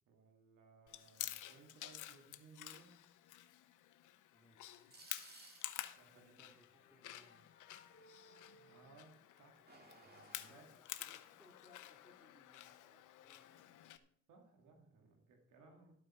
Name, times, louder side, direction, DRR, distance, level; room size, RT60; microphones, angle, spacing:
voice 1, 0.1-2.9 6.0-6.5 8.5-10.7 14.3-15.9, right 4 dB, 85° right, 3 dB, 2.2 m, -63 dB
Chewing mastication, 0.9-14.0, left 14 dB, 80° left, 0.8 m, -51 dB
voice 2, 4.3-4.9 6.1-7.5 10.5-13.9 15.6-15.9, left 2 dB, 5° right, -1 dB, 2.9 m, -68 dB
sound 1, 4.6-6.1 9.4-10.5, right 2 dB, 30° right, 2.5 m, -59 dB
sound 2, 6.0-9.9, left 1 dB, 40° left, 1.3 m, -67 dB
12.5 x 8.8 x 4.3 m, 0.66 s
cardioid pair, 90°, 30 cm